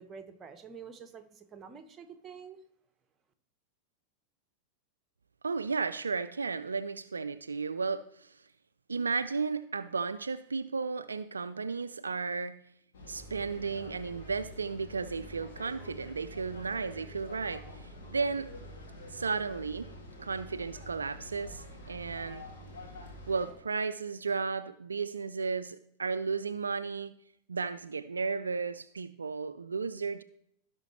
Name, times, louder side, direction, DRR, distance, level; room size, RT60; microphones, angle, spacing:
voice 1, 0.0-2.6, right 6 dB, 20° right, 0.9 m, -48 dB
voice 2, 5.4-8.4 8.9-12.6 13.1-18.5 19.1-19.9 20.2-22.4 23.3-27.1 27.5-30.2, right 4 dB, 75° right, 0.3 m, -34 dB
sound 1, 12.9-23.5, left 1 dB, 60° left, 2.5 m, -47 dB
16.0 x 5.6 x 3.2 m
figure-of-eight pair, 90°, 0 cm